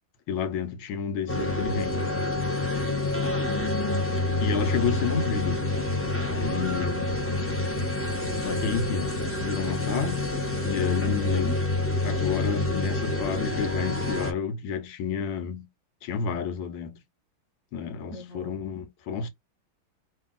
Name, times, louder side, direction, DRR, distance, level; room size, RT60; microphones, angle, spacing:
voice 1, 0.3-2.1 4.4-5.7 6.2-7.2 8.4-10.3 10.6-11.6 12.0-15.7 16.0-17.0 17.7-19.3, left 6 dB, 85° left, 1.7 m, -30 dB
sound 1, 1.3-14.3, left 2 dB, 15° left, 0.5 m, -27 dB
voice 2, 3.2-4.3 11.1-11.6 18.1-18.5, left 2 dB, 55° right, 0.9 m, -38 dB
3.5 x 2.7 x 3.7 m
omnidirectional pair, 2.2 m